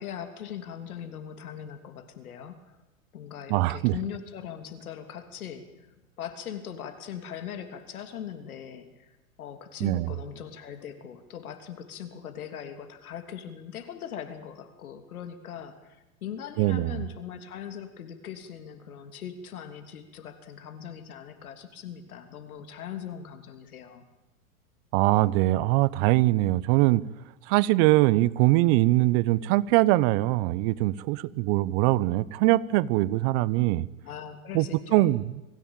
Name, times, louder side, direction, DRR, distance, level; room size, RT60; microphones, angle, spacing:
voice 1, 0.0-2.6 3.1-5.9 6.2-24.0 34.0-35.2, left 9 dB, 80° left, 8 dB, 3.2 m, -40 dB
voice 2, 3.5-3.9 9.8-10.1 16.6-17.0 24.9-27.0 27.5-33.9 34.5-34.7 34.9-35.4, right 18 dB, 45° right, 19 dB, 0.9 m, -22 dB
24.0 x 16.0 x 9.0 m, 1.0 s
hypercardioid pair, 130°, 42 cm